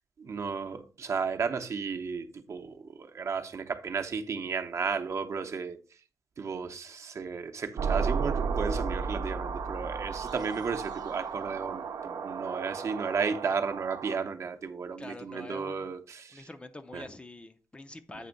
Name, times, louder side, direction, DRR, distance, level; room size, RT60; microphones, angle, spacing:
voice 1, 0.2-5.8 6.4-16.5 16.9-17.1, right 5 dB, 50° right, 0.8 m, -34 dB
sound 1, 7.8-14.2, right 5 dB, 85° right, 0.8 m, -33 dB
voice 2, 15.0-16.0 16.3-18.3, left 2 dB, 15° left, 0.5 m, -45 dB
8.3 x 3.4 x 5.2 m
wide cardioid pair, 160°, 7 cm